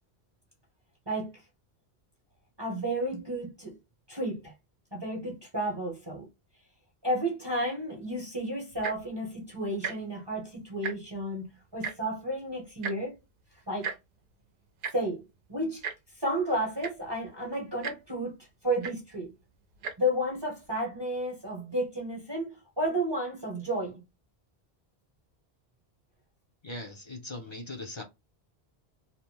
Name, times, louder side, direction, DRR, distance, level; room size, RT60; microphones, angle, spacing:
voice 1, 1.1-1.4 2.6-3.8 4.1-4.5 4.9-6.3 7.0-13.2 13.7-13.9 14.9-15.9 16.1-18.4 18.6-19.3 20.0-24.0, right 1 dB, 30° right, 0.8 m, -32 dB
Tick-tock, 8.7-9.1 9.8-9.9 10.3-10.4 10.7-11.2 11.8-11.9 12.8-13.0 13.8-14.0 14.8-14.9 15.8-16.0 16.5-16.6 16.8-17.1 17.8-18.0 18.8-18.9 19.7-19.9 20.6-20.7, right 6 dB, 60° right, 0.7 m, -35 dB
voice 2, 26.6-28.0, left 2 dB, 35° left, 0.5 m, -40 dB
2.8 x 2.0 x 3.0 m
omnidirectional pair, 1.0 m